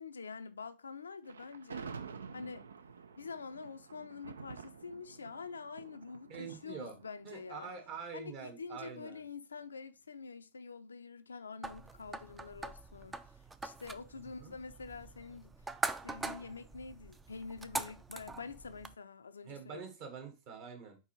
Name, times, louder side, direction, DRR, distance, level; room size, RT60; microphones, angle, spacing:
voice 1, 0.0-2.0 2.3-2.7 3.2-7.7 8.1-13.2 13.6-15.5 16.0-19.8, left 4 dB, 75° left, 0.4 m, -46 dB
Thunder, 1.3-8.5, right 5 dB, 70° right, 0.5 m, -49 dB
voice 2, 6.3-6.9 7.2-9.2 14.4-14.5 19.4-21.0, right 6 dB, 45° right, 1.9 m, -45 dB
sound 1, 11.6-19.0, right 3 dB, 10° right, 0.4 m, -43 dB
4.7 x 4.6 x 4.6 m
figure-of-eight pair, 90°, 0 cm